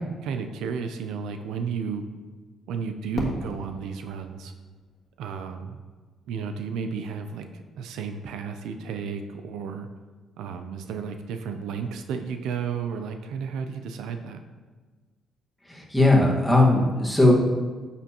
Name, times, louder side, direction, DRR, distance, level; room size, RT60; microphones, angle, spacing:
voice 1, 0.2-2.0 2.7-4.5 5.2-5.8 6.3-9.9 10.4-14.4, right 6 dB, 85° right, 7 dB, 0.5 m, -33 dB
Fireworks, 3.2-6.0, left 2 dB, 65° left, 1.6 m, -38 dB
voice 2, 15.7-17.3, left 2 dB, 5° left, -3 dB, 1.7 m, -19 dB
9.3 x 7.1 x 3.0 m, 1.4 s
cardioid pair, 90°, 0 cm